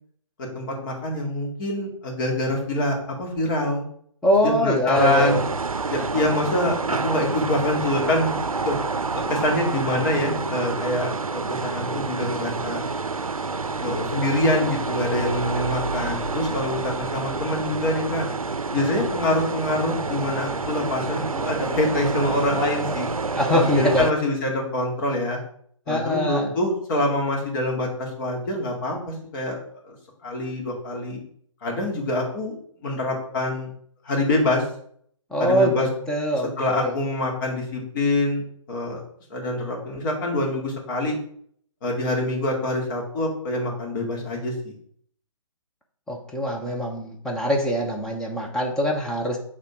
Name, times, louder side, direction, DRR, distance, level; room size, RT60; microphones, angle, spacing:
voice 1, 0.4-3.9 4.4-5.4 5.9-8.3 8.7-8.8 9.1-12.8 13.8-18.2 18.7-23.1 23.5-25.4 25.9-29.6 29.8-29.9 30.2-31.2 31.6-32.5 32.8-33.7 34.0-34.6 35.4-35.9 36.6-38.4 38.7-39.0 39.3-41.2 41.8-44.7, left 1 dB, 35° left, -1 dB, 2.3 m, -25 dB
voice 2, 4.2-5.4 23.3-24.1 25.9-26.5 35.3-36.9 46.1-49.4, equal, 5° left, -1 dB, 0.9 m, -23 dB
sound 1, 4.9-24.1, right 4 dB, 90° right, 0.5 m, -28 dB
8.3 x 3.7 x 4.8 m, 0.62 s
figure-of-eight pair, 135°, 17 cm